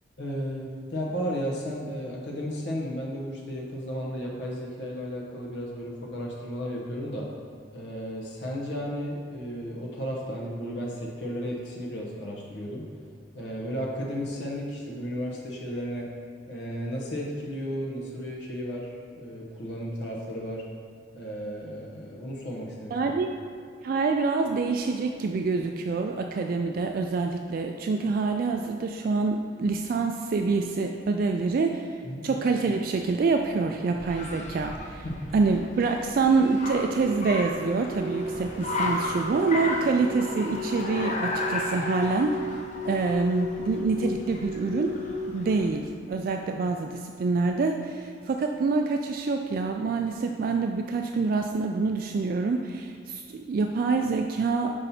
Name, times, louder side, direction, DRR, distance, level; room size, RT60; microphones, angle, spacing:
voice 1, 0.2-7.3 7.7-12.8 13.3-16.1 16.5-20.6 21.1-23.1 32.0-32.3 35.0-35.3, equal, 65° left, -3 dB, 0.9 m, -34 dB
voice 2, 22.9-23.3 23.8-35.1 35.3-42.6 42.8-44.9 45.3-54.7, right 4 dB, 50° right, 4 dB, 0.3 m, -26 dB
Car, 33.0-45.9, left 2 dB, 40° left, 0.6 m, -35 dB
sound 1, 36.5-45.6, left 2 dB, 10° left, 1.5 m, -36 dB
5.6 x 5.2 x 4.1 m, 2.3 s
head